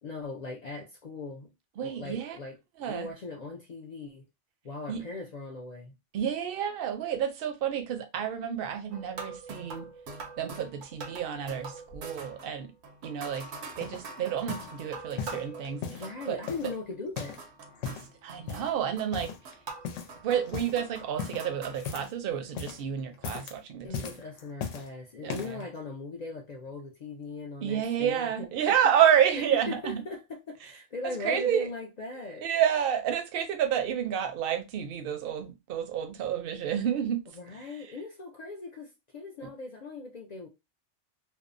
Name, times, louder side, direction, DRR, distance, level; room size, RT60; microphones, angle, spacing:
voice 1, 0.0-1.5 1.8-2.6 2.8-4.3 4.6-5.9 15.9-17.4 23.8-28.7 29.7-30.2 30.5-32.5 37.4-40.5, left 3 dB, 65° left, 0.4 m, -39 dB
voice 2, 1.8-2.4 2.8-3.1 4.9-5.0 6.1-9.9 10.4-12.7 13.0-13.5 13.8-16.4 18.2-19.3 20.2-23.9 25.2-25.6 27.6-30.0 31.0-31.7 32.4-37.2 37.5-37.6, right 9 dB, 60° right, 0.6 m, -29 dB
sound 1, 8.9-16.9 17.2-21.8, right 4 dB, 80° right, 0.9 m, -44 dB
sound 2, 13.3-14.1 14.5-14.7 15.2-16.1 16.5-17.5 17.7-18.1 18.5-18.8 19.1-19.5 19.8-20.2 20.4-20.8 21.2-22.2 22.5-22.8 23.1-23.6 23.9-24.9 25.3-25.6 26.3-26.4, left 6 dB, 85° left, 0.9 m, -38 dB
2.6 x 2.0 x 2.4 m
omnidirectional pair, 1.2 m